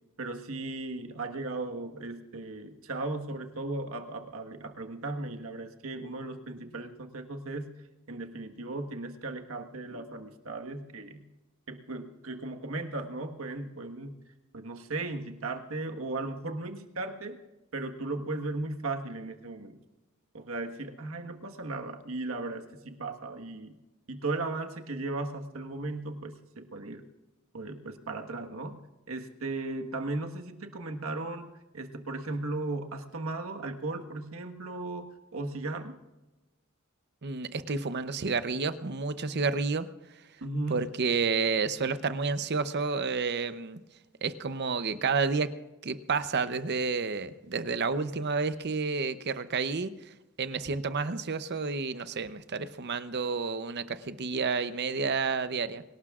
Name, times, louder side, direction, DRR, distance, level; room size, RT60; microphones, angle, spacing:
voice 1, 0.2-11.3 11.7-14.2 14.5-17.4 17.7-19.8 20.3-23.8 24.1-27.0 27.5-36.0 40.4-40.9, right 2 dB, 85° right, 5 dB, 1.5 m, -36 dB
voice 2, 37.2-39.9 40.7-43.8 44.2-45.5 45.8-55.8, right 4 dB, 55° right, 12 dB, 0.7 m, -30 dB
24.0 x 18.0 x 2.5 m, 1.1 s
head